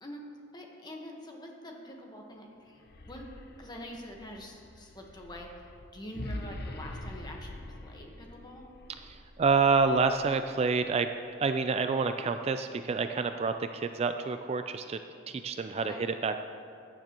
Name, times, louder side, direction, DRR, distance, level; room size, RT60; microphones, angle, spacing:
voice 1, 0.5-3.3 3.6-8.7 15.9-16.1, equal, 25° left, 1 dB, 1.3 m, -45 dB
sound 1, 2.7-10.8, left 1 dB, 60° left, 0.7 m, -45 dB
voice 2, 9.0-11.1 11.4-15.0 15.3-16.4, right 4 dB, 35° right, 8 dB, 0.3 m, -28 dB
15.0 x 9.9 x 3.0 m, 2.4 s
head